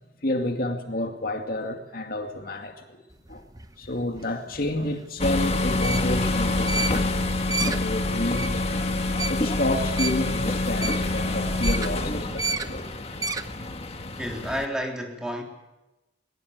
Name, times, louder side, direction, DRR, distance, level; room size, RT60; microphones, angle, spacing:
voice 1, 0.0-3.0 3.3-3.4 3.8-7.3 7.7-8.7 9.2-12.9, left 1 dB, 55° left, 2.3 m, -30 dB
sound 1, 3.1-13.7, right 3 dB, 20° right, 0.9 m, -33 dB
sound 2, 5.2-14.7, left 2 dB, 35° left, 1.7 m, -26 dB
voice 2, 14.2-15.4, equal, 5° right, 3.7 m, -30 dB
21.5 x 21.0 x 8.2 m
head